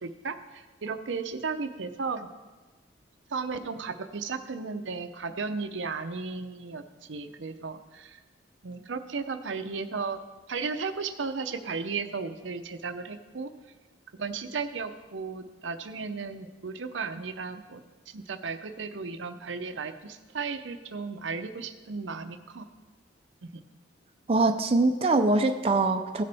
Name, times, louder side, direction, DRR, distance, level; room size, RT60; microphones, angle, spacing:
voice 1, 0.0-2.3 3.3-6.8 7.1-8.2 8.6-10.2 10.5-13.5 14.2-17.8 18.1-22.7 23.4-23.6, right 4 dB, 80° right, 8 dB, 0.6 m, -35 dB
voice 2, 24.3-26.2, right 2 dB, 30° right, 5 dB, 0.5 m, -23 dB
16.5 x 6.7 x 3.4 m, 1.2 s
head